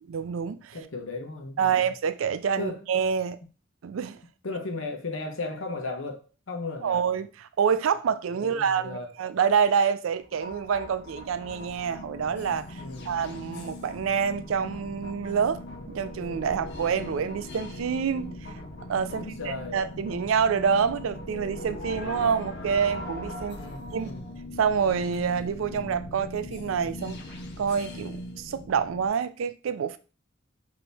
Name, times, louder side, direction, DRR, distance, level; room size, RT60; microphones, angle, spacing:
voice 1, 0.1-0.8 1.6-3.4 3.8-4.2 6.8-18.4 18.9-23.6 23.9-24.1 24.6-27.2 27.6-30.0, right 6 dB, 80° right, 0.4 m, -27 dB
voice 2, 0.7-1.9 2.6-2.8 4.4-7.0 8.3-9.1 12.7-13.3 19.1-19.8 23.5-24.2, left 3 dB, 80° left, 0.9 m, -36 dB
sound 1, 10.2-29.1, left 1 dB, 60° left, 0.6 m, -40 dB
4.2 x 2.8 x 3.4 m
head